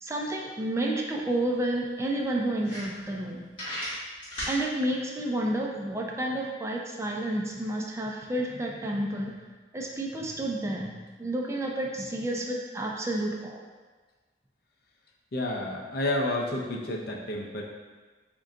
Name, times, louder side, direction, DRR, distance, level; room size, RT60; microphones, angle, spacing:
voice 1, 0.0-3.4 4.5-9.3 9.7-10.9 11.2-13.6, right 1 dB, 15° right, -1 dB, 0.3 m, -30 dB
sound 1, 1.2-1.3 1.6-1.7 2.2-2.3 2.6-3.3 3.5-4.6, equal, 30° left, 1.5 m, -35 dB
voice 2, 15.3-17.6, left 1 dB, 60° left, 0 dB, 0.5 m, -30 dB
3.7 x 2.2 x 3.7 m, 1.3 s
head